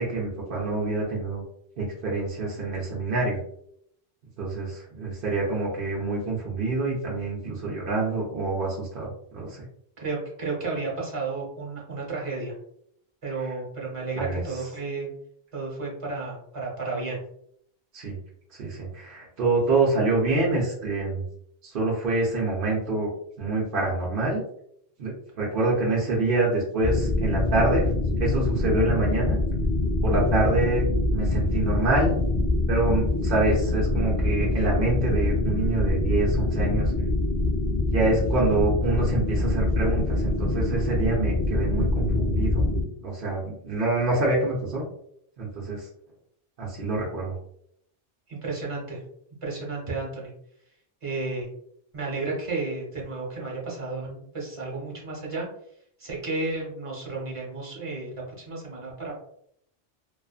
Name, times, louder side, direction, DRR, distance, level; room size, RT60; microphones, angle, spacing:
voice 1, 0.0-1.4 1.8-3.4 4.4-9.6 13.4-13.5 14.2-14.4 17.9-18.2 18.6-21.2 21.6-23.1 23.4-24.4 25.0-27.9 28.2-29.4 30.0-32.2 32.7-36.9 37.9-44.8 45.4-45.9 46.6-47.3, right 2 dB, 65° right, -4 dB, 0.8 m, -26 dB
voice 2, 10.0-12.5 13.2-15.1 15.5-17.2 48.3-49.0 49.4-50.3 51.0-51.5 51.9-55.5 56.0-59.1, right 3 dB, 35° right, -4 dB, 1.0 m, -32 dB
sound 1, 26.8-42.8, left 2 dB, 25° left, 0.9 m, -24 dB
2.4 x 2.4 x 2.3 m, 0.70 s
omnidirectional pair, 1.1 m